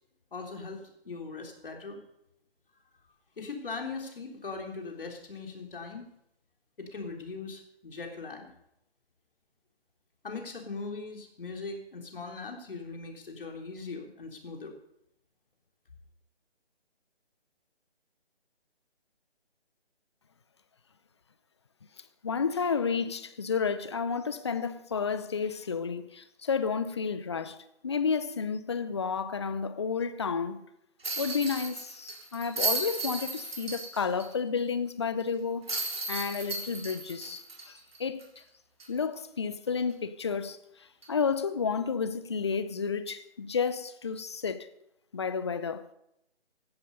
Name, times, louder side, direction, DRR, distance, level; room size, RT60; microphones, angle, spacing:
voice 1, 0.3-2.0 3.4-6.1 6.8-8.5 10.2-14.7, left 4 dB, 60° left, 3.5 m, -40 dB
voice 2, 22.2-30.7 31.2-38.4 38.9-44.7 45.1-45.9, left 5 dB, 25° left, 0.6 m, -31 dB
sound 1, 31.0-34.3 34.6-34.7 35.7-38.4 38.8-38.9 41.0-41.2, right 3 dB, 70° right, 4.0 m, -35 dB
16.5 x 11.5 x 5.3 m
figure-of-eight pair, 150°, 32 cm